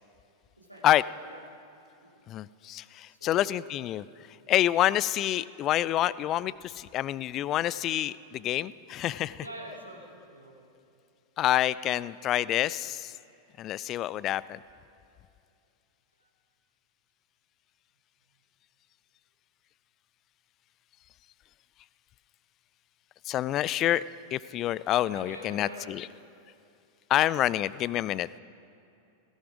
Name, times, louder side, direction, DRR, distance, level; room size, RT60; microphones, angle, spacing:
voice 1, 0.6-1.5 2.0-2.2 3.1-3.7 4.7-4.8 9.4-10.7 16.2-16.3 25.1-26.0 27.6-27.8, right 1 dB, 85° right, -1 dB, 2.5 m, -46 dB
voice 2, 2.3-4.0 4.5-9.4 11.4-13.1 13.6-14.6 23.3-24.0 24.3-26.1 27.1-28.4, left 13 dB, 35° left, 19 dB, 0.3 m, -27 dB
17.0 x 17.0 x 4.9 m, 2.6 s
figure-of-eight pair, 90°, 0 cm